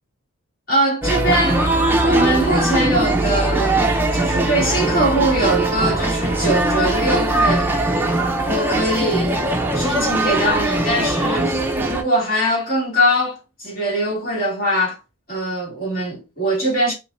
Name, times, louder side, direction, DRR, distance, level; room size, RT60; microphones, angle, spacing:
voice 1, 0.7-1.6 2.0-3.8 4.1-7.7 8.4-9.4 9.7-15.0 15.3-16.9, right 1 dB, 40° left, 2.5 m, -22 dB
sound 1, 1.0-12.0, right 2 dB, 10° right, 0.6 m, -20 dB
5.0 x 2.8 x 2.6 m
head